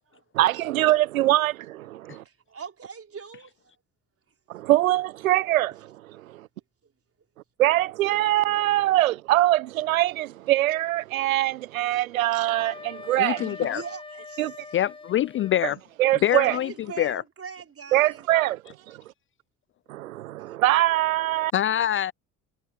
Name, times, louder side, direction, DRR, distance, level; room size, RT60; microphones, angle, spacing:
voice 1, 0.3-2.2 4.5-5.7 6.2-6.5 7.6-13.6 14.4-14.5 15.6-15.7 16.0-16.6 17.9-19.0 19.9-21.5, right 15 dB, 80° right, 1.0 m, -23 dB
voice 2, 2.2-3.7 6.8-6.9 12.3-12.5 13.6-14.8 16.3-18.3 20.4-20.6, right 6 dB, 35° right, 4.1 m, -42 dB
Wind instrument woodwind instrument, 12.4-15.6, left 3 dB, 15° left, 1.5 m, -42 dB
voice 3, 13.2-13.8 14.7-15.8 16.2-16.7 17.0-17.2 21.5-22.1, left 11 dB, 30° left, 0.4 m, -24 dB
hypercardioid pair, 55°, 40 cm